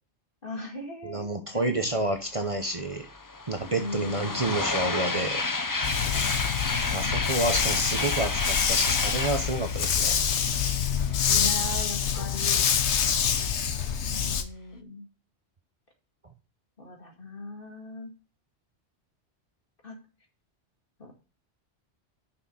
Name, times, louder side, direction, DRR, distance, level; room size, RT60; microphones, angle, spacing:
voice 1, 0.4-1.2 1.5-1.7 3.7-4.5 6.1-6.6 11.3-12.6 14.0-15.1 16.8-18.1 19.8-20.0 21.0-21.1, left 1 dB, 55° left, 1 dB, 2.4 m, -38 dB
voice 2, 1.0-3.1 3.5-5.4 6.9-10.2, right 2 dB, 35° right, 5 dB, 0.9 m, -29 dB
sound 1, 2.4-2.5 2.7-11.4, left 3 dB, 20° left, 0.6 m, -31 dB
Dog, 5.8-14.4, left 7 dB, 85° left, 1.2 m, -26 dB
6.5 x 6.0 x 5.5 m, 0.34 s
omnidirectional pair, 1.1 m